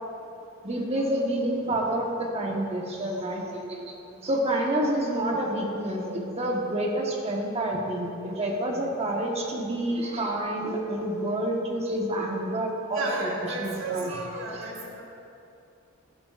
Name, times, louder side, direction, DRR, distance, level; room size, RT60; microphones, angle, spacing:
voice 1, 0.6-3.9 4.2-13.3 13.6-14.2 14.5-14.7, right 1 dB, 30° right, 0 dB, 1.2 m, -28 dB
voice 2, 12.9-14.0 14.3-15.0, right 3 dB, 65° right, -3 dB, 1.7 m, -32 dB
18.0 x 8.5 x 2.5 m, 2.6 s
head